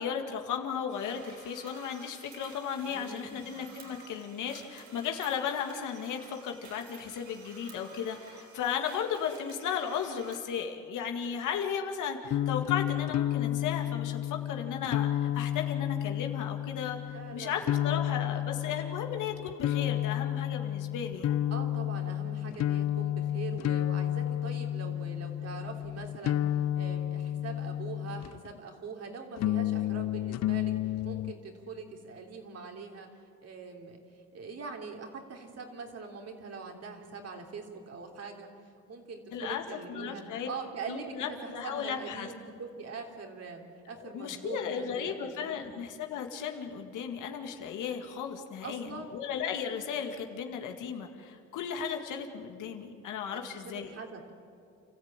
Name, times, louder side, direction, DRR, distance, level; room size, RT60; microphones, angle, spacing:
voice 1, 0.0-21.4 39.3-40.5 40.9-42.3 44.0-53.9, left 7 dB, 85° left, 4 dB, 2.0 m, -35 dB
sound 1, 0.9-10.4, right 5 dB, 70° right, 3.6 m, -53 dB
voice 2, 2.8-3.5 17.1-18.4 21.5-26.5 26.7-38.5 38.9-41.4 41.6-45.7 48.6-49.2 53.3-54.3, right 4 dB, 55° right, 2 dB, 3.4 m, -43 dB
sound 2, 12.3-28.6 29.4-31.3, left 12 dB, 60° left, 0.5 m, -31 dB
29.0 x 14.0 x 8.9 m, 2.5 s
cardioid pair, 90°, 30 cm